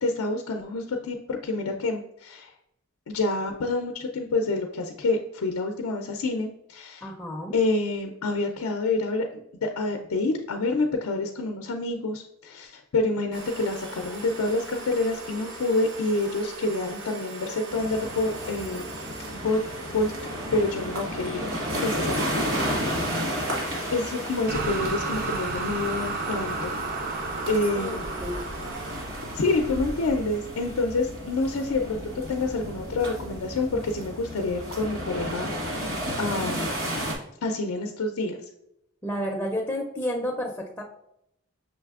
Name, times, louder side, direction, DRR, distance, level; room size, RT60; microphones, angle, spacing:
voice 1, 0.0-2.5 3.1-7.1 7.5-9.3 9.6-18.8 19.4-19.6 19.9-20.1 20.5-21.5 21.8-22.9 23.9-26.7 27.5-28.0 29.3-32.0 32.3-36.7 37.4-38.4, left 2 dB, 90° left, 4 dB, 0.5 m, -27 dB
voice 2, 7.0-7.6 27.7-28.4 39.0-40.8, equal, 10° left, -1 dB, 0.5 m, -31 dB
sound 1, 13.3-29.0, right 2 dB, 85° right, 1.0 m, -40 dB
sound 2, 17.7-37.1, equal, 65° right, 1.5 m, -33 dB
sound 3, 24.5-30.5, right 3 dB, 45° right, 0.5 m, -33 dB
6.2 x 3.2 x 2.4 m, 0.80 s
head